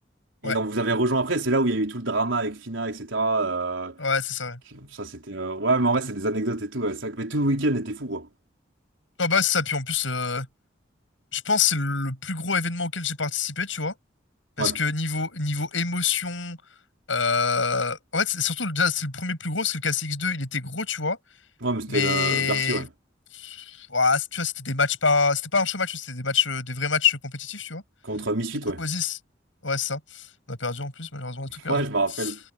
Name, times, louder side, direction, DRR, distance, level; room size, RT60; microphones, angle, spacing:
voice 1, 0.4-4.0 4.7-8.3 14.6-14.8 21.6-22.9 28.0-28.8 31.7-32.4, right 2 dB, 85° right, 4.3 m, -26 dB
voice 2, 4.0-4.6 9.2-10.5 11.3-13.9 14.6-16.6 17.1-21.2 21.9-22.9 23.3-27.8 28.8-29.2 29.6-31.8 32.2-32.3, left 5 dB, 85° left, 7.7 m, -26 dB
head